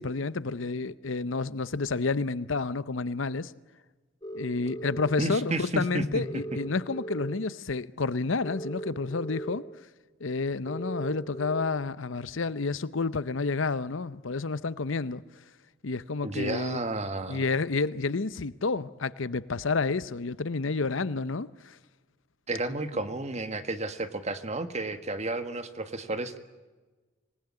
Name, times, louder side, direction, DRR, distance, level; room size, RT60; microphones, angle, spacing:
voice 1, 0.0-3.5 4.3-9.6 10.2-15.2 15.8-16.8 17.3-21.8 22.9-23.0, left 4 dB, 65° left, 0.8 m, -30 dB
sound 1, 4.2-5.1 6.2-7.3 8.4-9.6 10.7-11.6, right 2 dB, 20° left, 2.9 m, -38 dB
voice 2, 5.2-6.2 16.2-17.4 22.5-26.4, right 2 dB, 35° right, 1.8 m, -32 dB
26.5 x 19.5 x 9.8 m
head